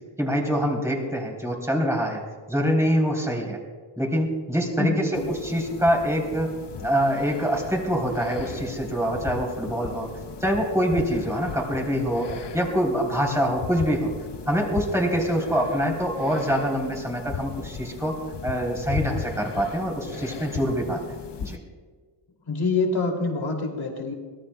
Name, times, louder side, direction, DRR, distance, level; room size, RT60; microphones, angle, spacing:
voice 1, 0.2-2.2 2.5-3.6 4.0-6.5 6.8-10.1 10.4-14.1 14.5-21.6, equal, 5° right, -1 dB, 3.5 m, -25 dB
voice 2, 4.8-5.3 22.5-24.1, left 3 dB, 75° left, 2 dB, 2.9 m, -26 dB
sound 1, 5.1-21.6, left 6 dB, 60° left, 0.9 m, -37 dB
23.0 x 18.0 x 2.3 m, 1.4 s
wide cardioid pair, 110°, 48 cm